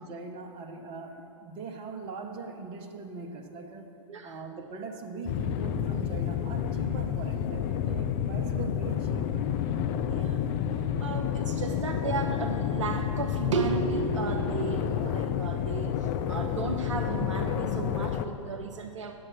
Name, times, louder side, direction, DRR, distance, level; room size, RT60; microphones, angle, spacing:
voice 1, 0.0-4.0 4.2-9.5, right 4 dB, 30° right, 4 dB, 1.0 m, -41 dB
voice 2, 4.1-4.4 10.1-10.4 11.0-19.1, right 5 dB, 60° right, 4 dB, 0.6 m, -34 dB
sound 1, 5.3-18.3, left 9 dB, 35° left, 0.5 m, -29 dB
9.7 x 7.6 x 6.4 m, 2.8 s
figure-of-eight pair, 105°, 17 cm